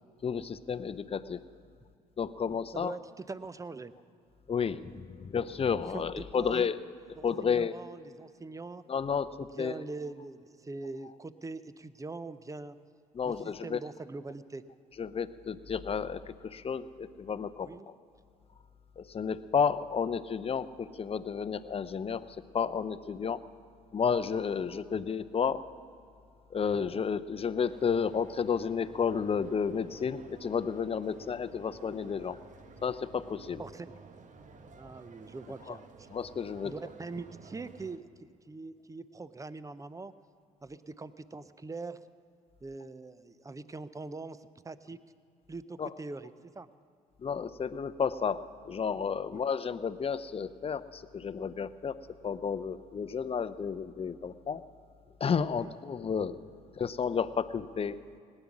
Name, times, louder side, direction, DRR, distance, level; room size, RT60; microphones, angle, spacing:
voice 1, 0.2-1.4 2.2-2.9 4.5-6.8 7.2-7.8 8.9-9.8 13.1-13.8 15.0-17.9 19.0-23.4 23.9-25.6 26.5-32.4 32.8-33.6 35.7-35.8 36.1-36.7 45.8-45.9 47.2-52.0 52.2-54.6 55.2-56.4 56.7-58.0, left 6 dB, 30° left, 12 dB, 0.6 m, -32 dB
voice 2, 2.7-3.9 5.9-6.7 7.2-8.8 9.6-12.8 13.2-13.3 13.6-14.6 17.6-17.9 26.7-26.8 33.6-34.0 34.8-36.1 36.6-40.1 40.6-42.0 42.6-45.0 45.5-46.7 49.3-49.4 55.6-55.7, right 3 dB, 15° right, 15 dB, 0.6 m, -43 dB
sound 1, 27.6-38.0, right 4 dB, 45° right, 1.1 m, -53 dB
18.0 x 9.9 x 6.1 m, 2.4 s
hypercardioid pair, 55°, 18 cm